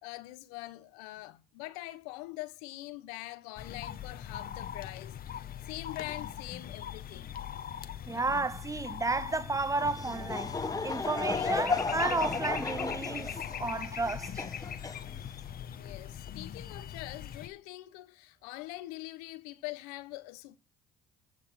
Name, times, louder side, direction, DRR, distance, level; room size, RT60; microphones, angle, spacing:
voice 1, 0.0-7.3 15.7-20.6, left 19 dB, 85° left, 1.0 m, -44 dB
sound 1, 3.6-17.5, left 9 dB, 50° left, 1.2 m, -41 dB
voice 2, 8.1-10.6 10.8-13.3 13.6-14.4, right 3 dB, 15° right, 0.5 m, -32 dB
Laughter / Crowd, 9.8-15.5, left 3 dB, 20° left, 1.3 m, -34 dB
11.5 x 5.3 x 5.5 m
hypercardioid pair, 65°, 20 cm